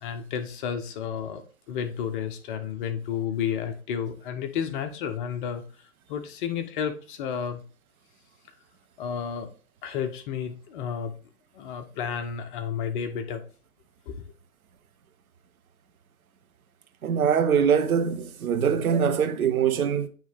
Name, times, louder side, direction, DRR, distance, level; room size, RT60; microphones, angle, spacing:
voice 1, 0.0-5.6 6.1-7.6 9.0-9.5 9.8-11.1 11.5-13.4 14.1-14.2, left 8 dB, 35° left, 0.8 m, -31 dB
voice 2, 17.0-20.1, right 7 dB, 70° right, 0.9 m, -23 dB
8.8 x 3.2 x 3.5 m
figure-of-eight pair, 115°, 44 cm